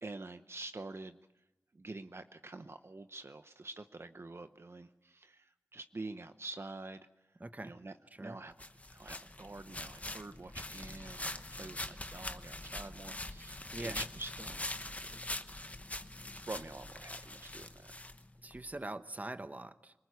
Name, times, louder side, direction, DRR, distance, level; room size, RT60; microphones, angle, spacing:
voice 1, 0.0-1.2 1.7-7.1 7.6-8.5 8.9-14.6 16.2-17.9, right 2 dB, 55° right, 9 dB, 0.9 m, -47 dB
voice 2, 7.4-7.8 8.2-8.4 13.7-14.0 18.4-19.9, right 2 dB, 30° right, 11 dB, 1.0 m, -43 dB
sound 1, 8.6-18.6, left 1 dB, 30° left, 1.0 m, -43 dB
26.0 x 20.0 x 8.2 m, 0.97 s
wide cardioid pair, 70°, 5 cm